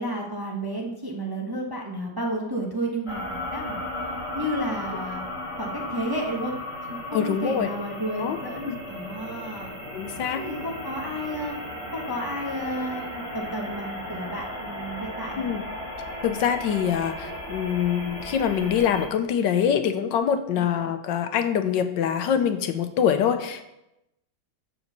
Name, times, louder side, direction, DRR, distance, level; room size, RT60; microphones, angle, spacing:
voice 1, 0.0-3.8 4.3-5.2 5.6-6.5 6.9-9.7 10.3-11.5 11.9-15.5 20.5-20.7, right 1 dB, 15° right, -1 dB, 1.0 m, -32 dB
sound 1, 3.1-19.1, left 1 dB, 35° left, 2.6 m, -35 dB
voice 2, 7.1-7.7 8.2-8.4 8.7-8.8 9.9-10.4 15.4-15.6 16.2-23.6, left 8 dB, 80° left, 8 dB, 1.4 m, -24 dB
7.3 x 6.4 x 6.7 m, 0.90 s
omnidirectional pair, 2.0 m